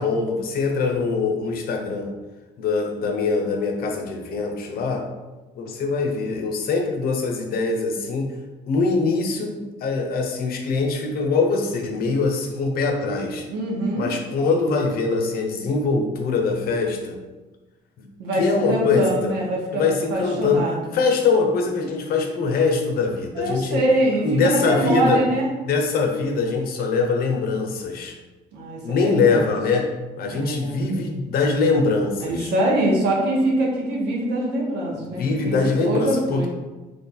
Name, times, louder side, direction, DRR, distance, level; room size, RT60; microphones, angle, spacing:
voice 1, 0.0-2.1 2.6-5.0 5.6-8.4 8.7-13.4 14.0-17.2 18.4-19.3 19.7-20.6 20.9-23.8 24.2-25.2 25.7-28.1 28.8-29.9 30.2-32.5 35.1-36.5, left 4 dB, 60° left, 2 dB, 0.7 m, -23 dB
voice 2, 13.5-14.1 18.2-20.9 23.3-25.5 28.5-29.5 30.3-30.9 32.2-35.6 35.8-36.5, right 1 dB, 85° right, -2 dB, 1.1 m, -24 dB
3.2 x 2.3 x 4.1 m, 1.2 s
cardioid pair, 110°, 17 cm